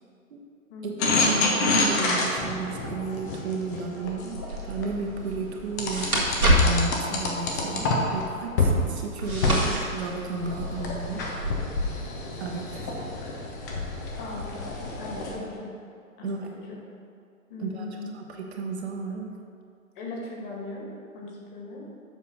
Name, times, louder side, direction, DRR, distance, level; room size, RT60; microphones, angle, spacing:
voice 1, 0.8-11.2 12.4-12.9 16.2-16.5 17.6-19.3, right 4 dB, 50° right, 1 dB, 1.0 m, -34 dB
sound 1, 1.0-4.9 5.8-8.2 8.6-8.8 9.2-15.3, left 2 dB, 15° left, 0.4 m, -27 dB
sound 2, 4.4-11.5, equal, 85° right, 1.8 m, -29 dB
voice 2, 14.2-15.7 16.2-16.8 17.5-18.2 20.0-20.8 21.1-21.8, left 2 dB, 40° left, -3 dB, 2.1 m, -39 dB
7.3 x 5.5 x 5.1 m, 2.3 s
figure-of-eight pair, 115°, 42 cm